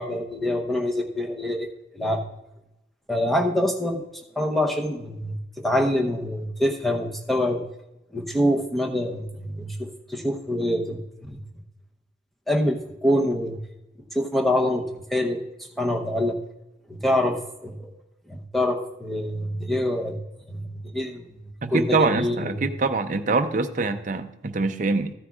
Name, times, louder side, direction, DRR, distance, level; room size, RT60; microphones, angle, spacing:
voice 1, 0.0-1.7 1.9-2.2 3.1-7.7 8.1-11.0 11.3-11.4 12.5-13.6 14.1-14.8 15.1-15.4 15.8-16.4 16.9-17.9 18.3-20.2 20.5-21.3 21.7-22.5, left 1 dB, ahead, 2 dB, 0.8 m, -25 dB
voice 2, 21.6-25.1, right 3 dB, 40° right, 8 dB, 0.5 m, -24 dB
14.0 x 9.8 x 2.4 m, 0.92 s
head